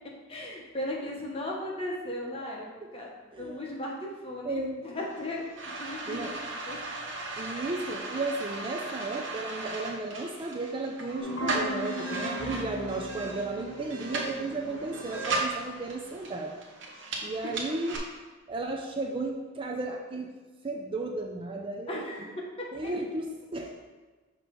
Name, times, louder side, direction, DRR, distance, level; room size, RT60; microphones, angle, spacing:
voice 1, 0.3-2.7 2.9-6.8 7.5-7.7 12.1-12.5 14.1-14.9 17.4-17.6 21.9-22.9, left 1 dB, 30° left, -3 dB, 1.1 m, -37 dB
voice 2, 3.3-3.8 4.4-4.8 6.1-6.3 7.4-16.6 17.2-18.0 18.5-20.3 20.6-22.0 22.7-23.7, right 2 dB, 25° right, 2 dB, 0.4 m, -34 dB
sound 1, 5.0-18.0, right 3 dB, 70° right, 1.0 m, -37 dB
sound 2, 11.2-16.2, equal, 65° left, 0.7 m, -38 dB
6.5 x 3.0 x 5.3 m, 1.3 s
head